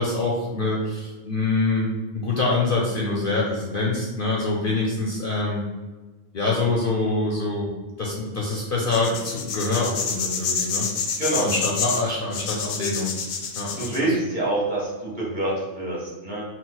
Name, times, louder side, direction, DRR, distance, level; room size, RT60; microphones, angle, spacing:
voice 1, 0.0-5.7 6.3-7.7 8.0-10.9 11.4-13.1 13.5-14.1, left 2 dB, 50° left, -3 dB, 0.7 m, -25 dB
sound 1, 8.8-14.0, left 6 dB, 75° left, 1.0 m, -28 dB
voice 2, 11.2-11.5 13.8-16.4, right 2 dB, 40° right, -5 dB, 1.3 m, -26 dB
4.3 x 2.0 x 4.0 m, 1.2 s
omnidirectional pair, 1.3 m